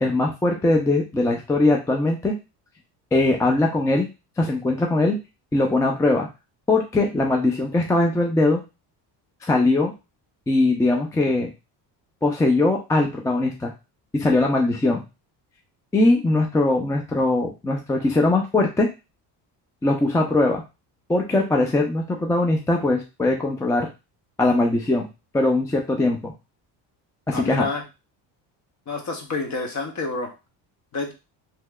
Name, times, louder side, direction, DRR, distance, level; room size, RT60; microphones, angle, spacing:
voice 1, 0.0-2.3 3.1-4.1 4.4-5.2 5.5-6.3 6.7-8.6 9.4-9.9 10.5-11.5 12.2-13.7 14.1-15.0 15.9-18.9 19.8-20.6 21.1-23.9 24.4-25.1 25.3-26.3 27.3-27.7, left 2 dB, 10° left, 1 dB, 0.4 m, -21 dB
voice 2, 27.3-27.8 28.9-30.3 30.9-31.1, left 3 dB, 40° left, 4 dB, 0.9 m, -28 dB
3.1 x 2.9 x 2.3 m, 0.27 s
cardioid pair, 100°, 45 cm